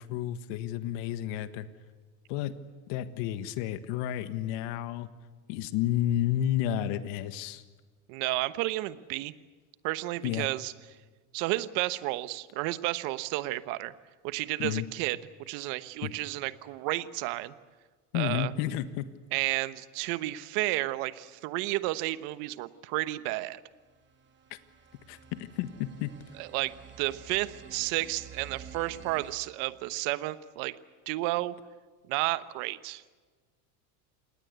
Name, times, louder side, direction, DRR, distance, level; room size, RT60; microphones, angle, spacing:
voice 1, 0.0-1.7 2.3-2.5 2.9-5.1 5.5-7.6 10.2-10.5 14.6-14.9 16.0-16.1 18.1-19.1 24.5-24.6 25.1-26.1, left 12 dB, 70° left, 11 dB, 1.6 m, -31 dB
voice 2, 8.1-9.3 9.8-10.7 11.3-13.9 14.2-15.2 15.5-17.5 18.1-18.5 19.3-23.6 26.3-26.7 27.0-30.7 31.1-31.5 32.1-33.0, right 18 dB, 70° right, 13 dB, 1.3 m, -32 dB
sound 1, 23.9-29.3, right 6 dB, 25° right, 2.9 m, -50 dB
27.5 x 20.0 x 8.2 m, 1.4 s
supercardioid pair, 130°, 45 cm